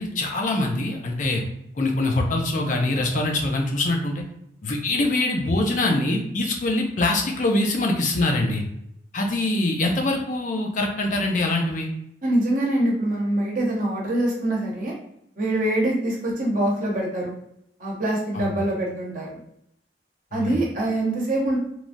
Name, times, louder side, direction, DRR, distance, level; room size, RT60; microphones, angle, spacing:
voice 1, 0.0-1.4 1.8-4.2 4.6-8.6 9.1-11.9 18.3-18.6 20.3-20.6, left 2 dB, 45° left, 1 dB, 0.5 m, -24 dB
voice 2, 12.2-14.9 15.4-17.3 17.8-19.4 20.3-21.6, right 1 dB, 50° right, -3 dB, 0.8 m, -24 dB
3.1 x 2.3 x 2.6 m, 0.75 s
head